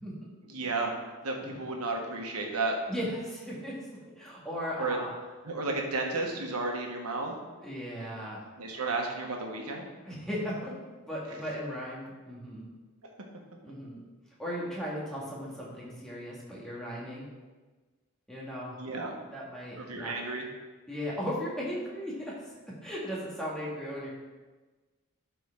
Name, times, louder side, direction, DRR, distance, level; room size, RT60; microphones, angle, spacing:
voice 1, 0.5-0.9 1.2-2.7 4.8-5.0 5.4-7.3 8.6-9.9 18.8-19.1 19.8-20.5, right 3 dB, 85° right, 1 dB, 1.4 m, -32 dB
voice 2, 2.9-5.1 7.6-8.4 10.1-10.8 11.1-12.7 13.6-14.0 14.4-17.3 18.3-18.8 19.3-20.2 20.9-24.1, equal, 5° left, -6 dB, 1.8 m, -37 dB
12.0 x 4.6 x 3.7 m, 1.3 s
head